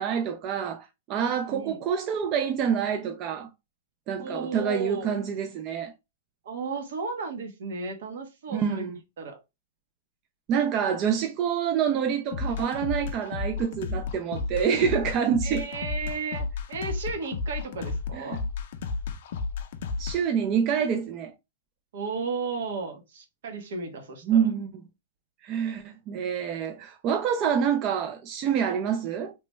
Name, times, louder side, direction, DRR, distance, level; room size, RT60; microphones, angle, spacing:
voice 1, 0.0-3.5 4.1-5.9 8.5-9.0 10.5-15.6 18.1-18.4 20.0-21.3 24.3-24.7 25.4-29.3, right 7 dB, 25° right, 0.3 m, -27 dB
voice 2, 1.5-1.8 4.2-5.1 6.4-8.9 9.2-9.4 15.4-18.4 21.9-24.5 29.1-29.2, right 4 dB, 60° right, 0.9 m, -34 dB
sound 1, 12.3-20.2, left 4 dB, 45° left, 0.4 m, -32 dB
3.1 x 2.1 x 3.0 m
hypercardioid pair, 170°, 0 cm